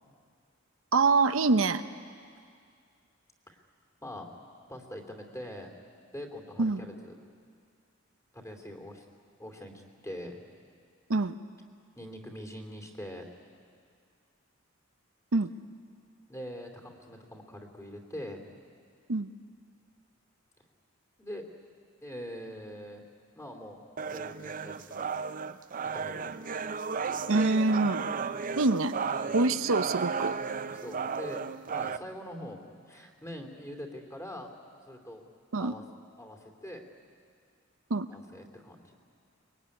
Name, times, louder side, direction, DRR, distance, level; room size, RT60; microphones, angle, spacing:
voice 1, 0.9-1.8 6.6-6.8 11.1-11.4 15.3-15.5 19.1-19.3 27.3-28.0 28.6-29.0 29.3-30.3 35.5-35.7 37.9-38.1, right 3 dB, 85° right, 10 dB, 0.8 m, -25 dB
voice 2, 4.7-5.7 6.1-7.2 8.3-9.1 9.4-10.4 12.0-13.2 16.3-18.4 21.2-21.4 22.0-23.0 23.3-23.8 24.1-25.1 25.9-26.2 29.2-29.4 30.8-32.6 32.9-34.5 34.9-35.2 35.6-35.8 36.2-36.8 38.1-38.9, equal, 15° left, 3 dB, 2.8 m, -43 dB
sound 1, 24.0-32.0, right 5 dB, 40° right, 0.6 m, -34 dB
24.5 x 22.0 x 9.8 m, 2.2 s
head